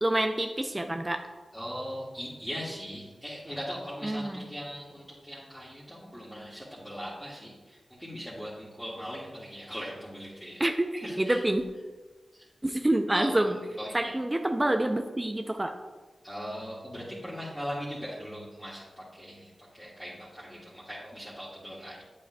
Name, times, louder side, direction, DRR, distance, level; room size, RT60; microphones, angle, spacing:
voice 1, 0.0-1.3 4.0-4.4 10.6-11.6 12.6-13.6 13.9-15.8, right 1 dB, 25° right, 5 dB, 0.5 m, -27 dB
voice 2, 1.5-10.6 11.0-11.4 12.3-12.4 13.1-13.5 13.8-14.2 16.2-22.0, equal, 5° left, -9 dB, 1.9 m, -40 dB
8.5 x 7.4 x 2.3 m, 1.3 s
cardioid pair, 40°, 0 cm